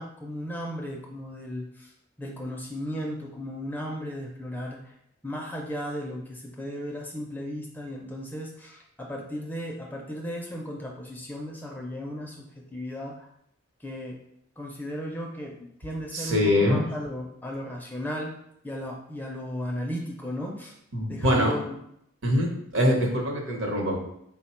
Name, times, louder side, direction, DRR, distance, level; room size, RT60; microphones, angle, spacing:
voice 1, 0.0-1.9 2.2-4.9 5.2-13.3 13.8-14.2 14.6-18.4 18.6-20.8 21.1-21.8, equal, 10° left, -1 dB, 0.4 m, -35 dB
voice 2, 16.1-16.9 20.9-21.5 22.2-24.0, left 1 dB, 70° right, 0 dB, 0.9 m, -23 dB
4.2 x 2.1 x 4.2 m, 0.75 s
head